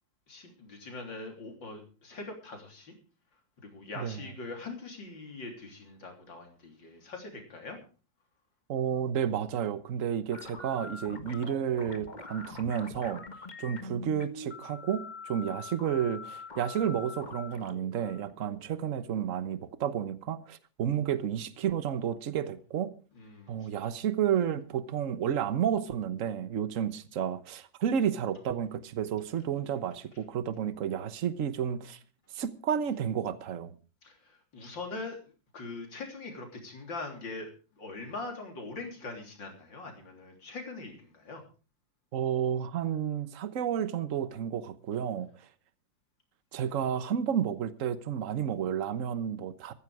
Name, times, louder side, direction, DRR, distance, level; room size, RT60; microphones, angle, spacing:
voice 1, 0.3-2.9 3.6-7.8 23.1-23.7 34.0-35.2 35.5-37.5 37.8-41.4, left 3 dB, 80° left, 4.0 m, -42 dB
voice 2, 8.7-13.2 13.6-22.9 23.5-32.0 32.3-33.7 42.1-45.3 46.5-49.7, right 9 dB, 50° right, 1.3 m, -31 dB
sound 1, 10.3-19.2, left 3 dB, 25° left, 1.4 m, -44 dB
14.5 x 13.5 x 4.9 m
omnidirectional pair, 2.0 m